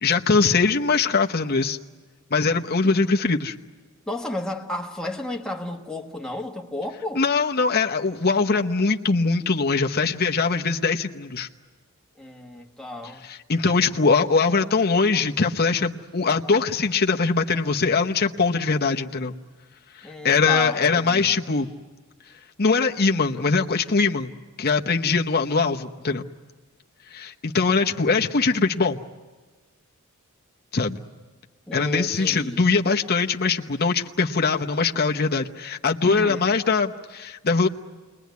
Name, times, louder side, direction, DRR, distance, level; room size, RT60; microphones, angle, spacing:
voice 1, 0.0-1.8 2.3-3.5 7.1-11.5 13.3-19.3 20.2-21.7 22.6-24.3 24.6-26.3 27.1-29.0 30.7-31.0 31.7-37.7, left 4 dB, 45° left, 1.0 m, -22 dB
voice 2, 4.1-7.2 12.2-13.2 20.0-21.3 31.7-32.6 36.0-36.5, left 1 dB, 5° left, 1.6 m, -32 dB
29.0 x 21.5 x 9.4 m
head